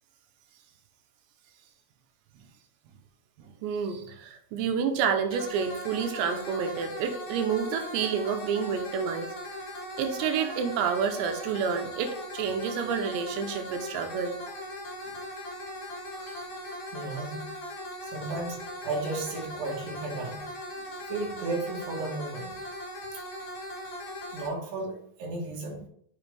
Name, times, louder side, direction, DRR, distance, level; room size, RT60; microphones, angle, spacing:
voice 1, 3.6-9.3 10.0-14.4 16.2-16.4, right 6 dB, 80° right, 6 dB, 2.9 m, -29 dB
sound 1, 5.3-24.5, equal, 65° left, 3.8 m, -39 dB
voice 2, 16.9-17.5 18.0-20.5 21.1-22.5 23.1-23.2 24.3-25.9, right 3 dB, 65° right, -1 dB, 2.8 m, -34 dB
7.1 x 5.7 x 3.3 m, 0.64 s
omnidirectional pair, 5.1 m